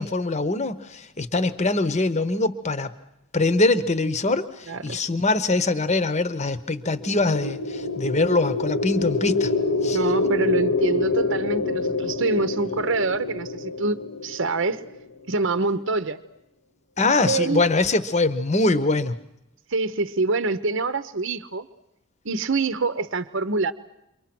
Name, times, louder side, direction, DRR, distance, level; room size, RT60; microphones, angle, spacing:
voice 1, 0.0-2.9 3.3-9.5 9.8-10.0 17.0-19.1, left 2 dB, 30° left, 13 dB, 1.0 m, -23 dB
voice 2, 4.7-5.0 9.9-14.8 15.3-16.2 17.3-17.6 19.7-21.7 22.2-23.7, right 3 dB, 60° right, 12 dB, 0.9 m, -25 dB
sound 1, 6.9-15.0, left 3 dB, 80° left, 1.7 m, -26 dB
29.0 x 24.0 x 6.1 m, 0.87 s
head